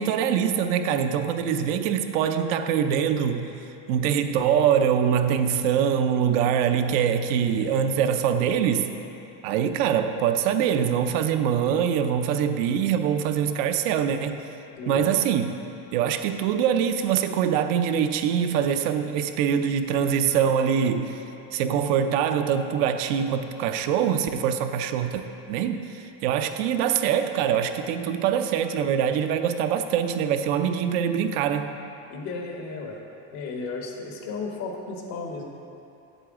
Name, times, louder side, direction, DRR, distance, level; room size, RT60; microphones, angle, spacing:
voice 1, 0.0-3.5 3.9-8.9 9.4-14.4 14.9-15.5 15.9-21.2 21.5-25.2 25.5-31.7, right 8 dB, 85° right, 8 dB, 0.6 m, -24 dB
voice 2, 32.1-33.0 33.3-35.4, left 4 dB, 85° left, 1 dB, 1.4 m, -34 dB
8.0 x 7.9 x 3.7 m, 2.8 s
cardioid pair, 130°, 40 cm